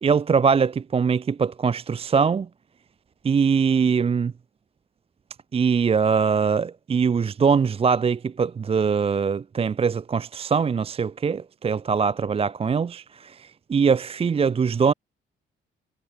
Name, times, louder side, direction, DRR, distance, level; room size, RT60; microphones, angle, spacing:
voice 1, 0.0-2.5 3.2-4.3 5.5-14.9, right 6 dB, 30° right, 0.5 m, -22 dB
cardioid pair, 90°, 20 cm